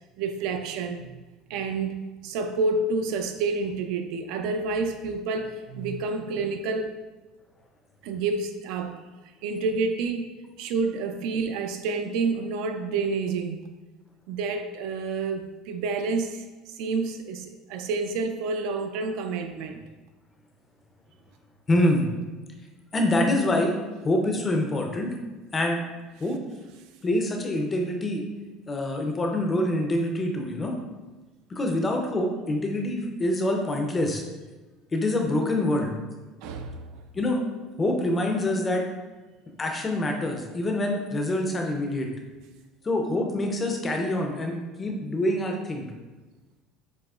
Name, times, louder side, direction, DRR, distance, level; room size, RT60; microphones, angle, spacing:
voice 1, 0.2-1.1 1.5-2.0 2.2-7.0 8.0-9.0 9.4-10.3 10.6-13.6 14.3-19.8 36.4-36.9, right 4 dB, 60° right, 7 dB, 0.4 m, -29 dB
voice 2, 21.7-22.1 22.9-23.8 24.0-25.1 25.5-25.8 26.2-26.4 27.0-28.2 28.7-30.7 31.5-34.2 34.9-35.9 37.1-37.4 37.8-38.8 39.6-42.1 42.8-45.9, left 1 dB, 15° left, 3 dB, 0.5 m, -25 dB
7.6 x 2.9 x 2.4 m, 1.2 s
cardioid pair, 170°, 0 cm